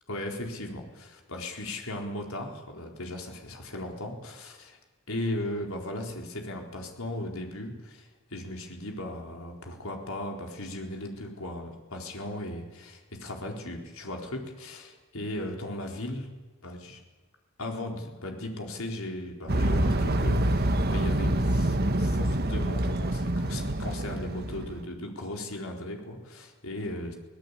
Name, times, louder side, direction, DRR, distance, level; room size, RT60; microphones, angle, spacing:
voice 1, 0.1-4.8 5.1-16.3 16.6-17.0 17.6-27.1, left 1 dB, 75° left, 2 dB, 4.2 m, -37 dB
sound 1, 19.5-24.9, right 1 dB, 45° right, 1.4 m, -26 dB
24.5 x 18.5 x 8.4 m, 1.2 s
head